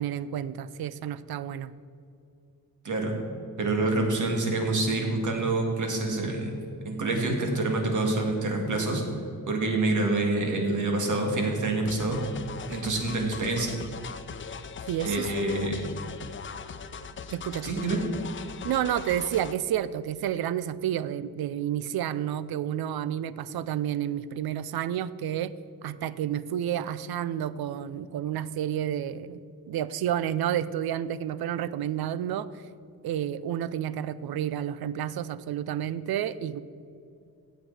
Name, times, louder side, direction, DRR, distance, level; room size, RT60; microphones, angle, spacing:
voice 1, 0.0-1.7 14.9-15.3 17.3-17.7 18.6-25.5 25.8-29.4 29.7-32.7 33.0-36.6, right 10 dB, 75° right, 16 dB, 0.5 m, -30 dB
voice 2, 2.8-3.2 3.6-9.0 9.5-12.2 12.7-13.8 15.0-15.9 17.6-18.0, right 2 dB, 50° right, 2 dB, 2.0 m, -27 dB
sound 1, 11.9-19.6, left 6 dB, 35° left, 0.4 m, -40 dB
15.5 x 8.1 x 4.8 m, 2.6 s
wide cardioid pair, 175°, 38 cm